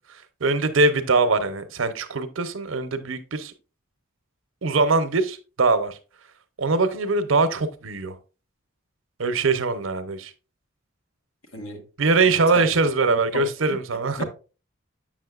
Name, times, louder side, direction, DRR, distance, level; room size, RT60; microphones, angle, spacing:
voice 1, 0.4-3.5 4.6-6.0 6.6-8.1 9.2-10.3 12.0-14.2, right 3 dB, 75° right, 0.7 m, -22 dB
voice 2, 11.5-12.6 13.3-13.8 14.2-14.3, left 1 dB, 90° left, 1.4 m, -34 dB
7.4 x 6.3 x 2.4 m
head